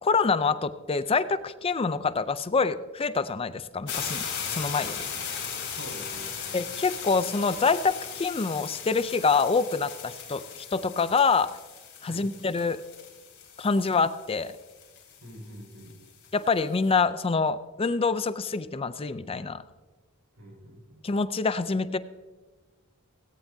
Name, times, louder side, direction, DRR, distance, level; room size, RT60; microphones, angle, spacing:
voice 1, 0.0-5.1 6.5-11.6 12.0-12.8 13.6-14.5 16.3-19.6 21.0-22.0, left 4 dB, 25° left, 13 dB, 0.4 m, -26 dB
sound 1, 3.9-16.6, left 7 dB, 55° left, 3.9 m, -38 dB
voice 2, 5.7-6.6 12.0-12.3 15.2-15.9 20.4-21.0, equal, 85° right, 0 dB, 5.5 m, -45 dB
18.0 x 17.0 x 2.7 m, 1.3 s
head